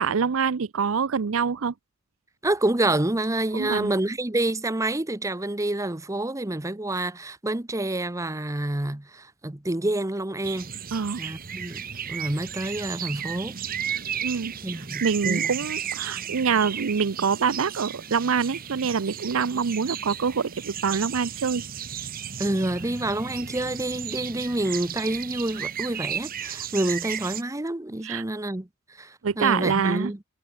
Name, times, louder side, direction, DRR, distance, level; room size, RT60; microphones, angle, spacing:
voice 1, 0.0-1.7 3.5-3.9 10.9-11.2 14.2-14.5 15.0-21.6 28.0-28.2 29.2-30.1, right 6 dB, 80° right, 0.6 m, -25 dB
voice 2, 2.4-10.7 11.2-11.8 12.1-13.6 14.6-15.5 22.4-30.2, right 1 dB, 15° right, 0.9 m, -28 dB
sound 1, 10.4-27.4, right 8 dB, 45° right, 1.3 m, -34 dB
head